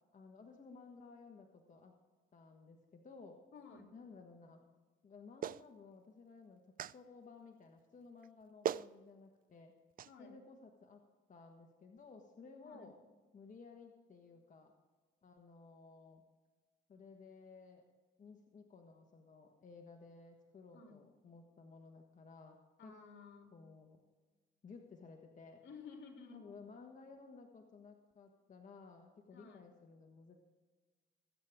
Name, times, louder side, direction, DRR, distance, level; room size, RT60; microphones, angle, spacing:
voice 1, 0.1-1.9 2.3-3.4 3.9-4.6 5.0-6.6 6.9-9.7 10.2-11.0 11.3-12.9 13.3-14.7 15.2-16.2 16.9-17.8 18.2-22.6 22.8-23.0 23.5-24.0 24.6-25.6 26.3-30.4, left 4 dB, 40° left, 2 dB, 1.4 m, -56 dB
voice 2, 3.5-3.9 10.1-10.4 12.6-12.9 20.7-21.0 22.8-23.5 25.6-26.5 29.3-29.6, left 4 dB, 70° left, 2 dB, 3.1 m, -54 dB
Clapping, 5.4-5.6 6.8-7.0 8.2-8.3 8.6-8.9 10.0-10.1, right 10 dB, 45° right, 0.4 m, -38 dB
21.0 x 8.6 x 3.7 m, 1.4 s
cardioid pair, 90°, 20 cm